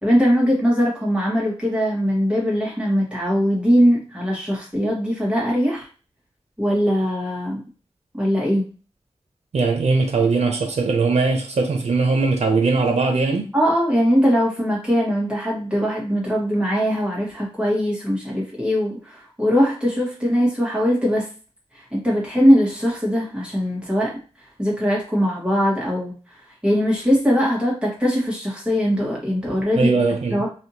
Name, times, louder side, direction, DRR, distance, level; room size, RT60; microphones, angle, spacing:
voice 1, 0.0-5.9 6.6-7.6 8.1-8.6 13.5-21.3 21.7-24.1 24.6-26.1 26.6-30.0 30.3-30.5, equal, 10° right, -4 dB, 1.5 m, -21 dB
voice 2, 9.5-13.5 29.8-30.5, right 4 dB, 90° right, 4 dB, 0.6 m, -20 dB
3.4 x 2.6 x 2.8 m, 0.36 s
wide cardioid pair, 90°, 11 cm